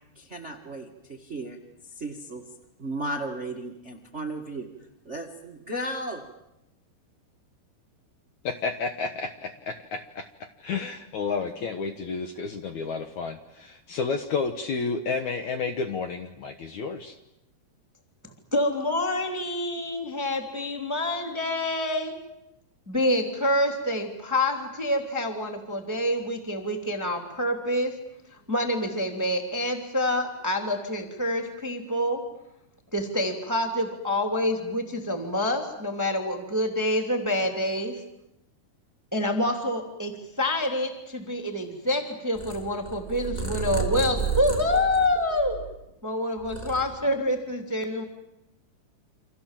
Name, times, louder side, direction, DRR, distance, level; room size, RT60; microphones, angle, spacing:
voice 1, 0.1-1.6 1.8-2.4 2.8-4.7 5.0-6.2, right 1 dB, 65° right, 4 dB, 0.6 m, -35 dB
voice 2, 8.4-17.2, left 4 dB, 70° left, 8 dB, 1.9 m, -31 dB
voice 3, 18.5-22.1 22.9-27.9 28.5-32.2 32.9-37.9 39.1-40.1 40.4-45.6 46.0-48.0, left 1 dB, 5° right, 4 dB, 1.9 m, -27 dB
Purr, 42.3-45.9 46.3-47.4, right 5 dB, 10° left, 2.8 m, -32 dB
29.0 x 26.0 x 7.5 m, 0.88 s
omnidirectional pair, 4.8 m